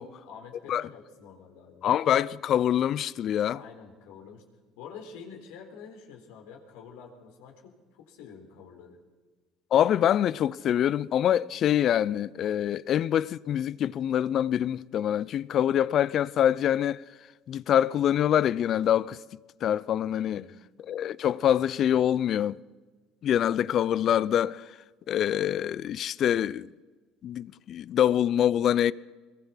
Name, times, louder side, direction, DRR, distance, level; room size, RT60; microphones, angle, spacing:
voice 1, 0.0-1.9 3.5-4.4 4.8-9.0 20.1-20.6, left 6 dB, 80° left, 3.9 m, -47 dB
voice 2, 1.8-3.6 9.7-17.0 17.5-19.2 19.6-20.4 20.9-22.6 23.2-24.8 25.1-26.7 27.2-28.9, left 10 dB, 55° left, 0.6 m, -25 dB
22.0 x 21.5 x 5.8 m
supercardioid pair, 90°, 0 cm